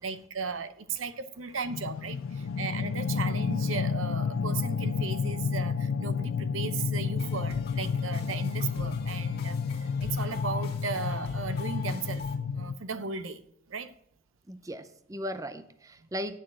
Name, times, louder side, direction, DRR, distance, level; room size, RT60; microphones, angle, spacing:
voice 1, 0.0-12.3 12.5-13.4 13.7-13.9, right 5 dB, 75° right, 0.8 m, -36 dB
sound 1, 1.7-12.8, left 5 dB, 80° left, 0.4 m, -31 dB
sound 2, 7.2-12.4, left 4 dB, 50° left, 1.7 m, -44 dB
voice 2, 14.5-16.4, equal, 15° right, 0.5 m, -37 dB
9.6 x 6.2 x 7.6 m
head